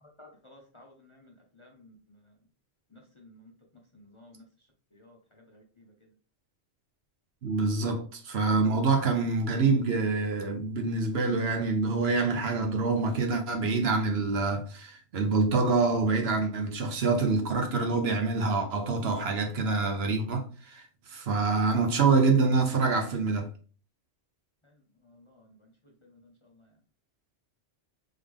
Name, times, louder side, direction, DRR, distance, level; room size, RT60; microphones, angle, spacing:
voice 1, 0.2-2.3 2.9-3.5 3.9-4.4 4.9-5.9 25.0-26.7, left 1 dB, 30° left, 0.6 m, -56 dB
voice 2, 7.4-20.8 21.1-23.5, right 3 dB, 60° right, 1.0 m, -26 dB
3.7 x 3.3 x 3.4 m
omnidirectional pair, 1.3 m